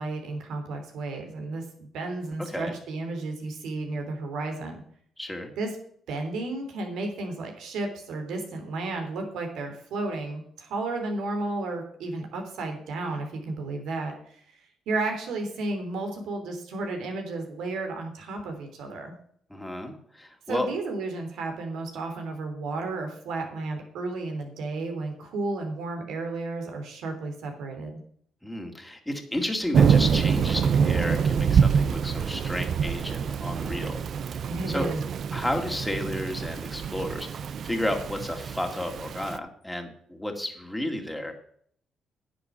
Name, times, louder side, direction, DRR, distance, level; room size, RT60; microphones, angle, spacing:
voice 1, 0.0-4.8 5.6-5.8 6.1-14.4 14.9-19.1 20.5-28.0 34.5-35.0, right 2 dB, 80° right, 4 dB, 3.2 m, -33 dB
voice 2, 5.2-5.5 19.5-20.7 28.4-34.0 34.7-34.9 35.3-37.3 37.6-41.3, left 1 dB, 5° left, 3 dB, 2.3 m, -32 dB
Thunder / Rain, 29.7-39.4, right 7 dB, 60° right, 0.6 m, -25 dB
10.0 x 6.9 x 7.2 m, 0.62 s
cardioid pair, 90°, 0 cm